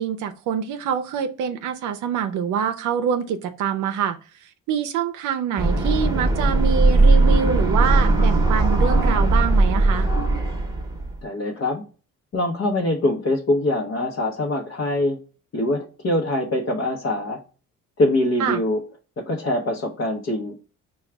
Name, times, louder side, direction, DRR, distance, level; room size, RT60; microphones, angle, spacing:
voice 1, 0.0-10.1 18.4-18.6, right 8 dB, 75° right, 7 dB, 0.5 m, -25 dB
sound 1, 5.6-11.2, right 2 dB, 10° right, 0.9 m, -18 dB
voice 2, 11.2-11.8 12.3-15.2 15.5-17.4 18.0-18.8 19.2-20.6, left 1 dB, 45° left, -1 dB, 0.8 m, -23 dB
4.7 x 2.3 x 3.3 m, 0.36 s
cardioid pair, 90°, 30 cm